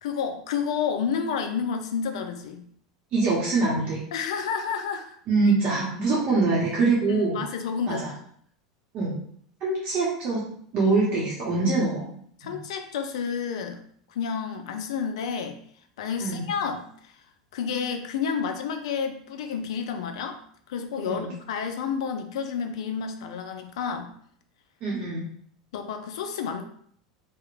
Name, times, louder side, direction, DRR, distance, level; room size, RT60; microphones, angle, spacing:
voice 1, 0.0-2.7 4.1-5.2 7.1-8.0 12.4-13.8 14.1-15.6 16.0-17.1 17.5-20.4 20.7-24.1 25.7-26.6, left 6 dB, 70° left, 6 dB, 0.4 m, -30 dB
voice 2, 3.1-4.0 5.3-7.4 7.9-8.1 8.9-9.1 9.6-10.4 10.7-12.1 12.4-12.6 16.2-16.5 21.1-21.3 24.8-25.3, right 3 dB, 45° right, -6 dB, 0.8 m, -24 dB
2.8 x 2.1 x 2.5 m, 0.62 s
hypercardioid pair, 90°, 3 cm